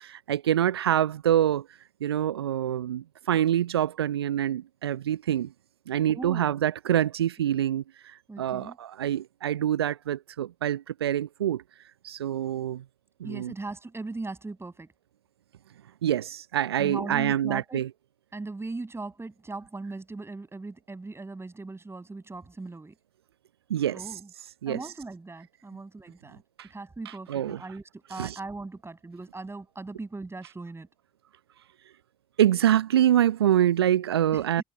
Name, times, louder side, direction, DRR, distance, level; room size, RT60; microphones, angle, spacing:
voice 1, 0.0-1.7 2.0-5.5 5.9-11.6 12.0-12.8 13.2-13.5 16.0-17.9 23.7-24.2 24.6-24.9 26.6-26.7 27.0-27.6 28.1-28.4 32.4-34.6, right 11 dB, 80° right, 0.7 m, -26 dB
voice 2, 6.1-6.6 8.3-8.8 13.2-14.9 16.8-17.8 18.3-22.9 23.9-24.3 24.7-26.4 26.7-30.9 34.3-34.6, right 3 dB, 20° right, 7.6 m, -39 dB
figure-of-eight pair, 50°, 13 cm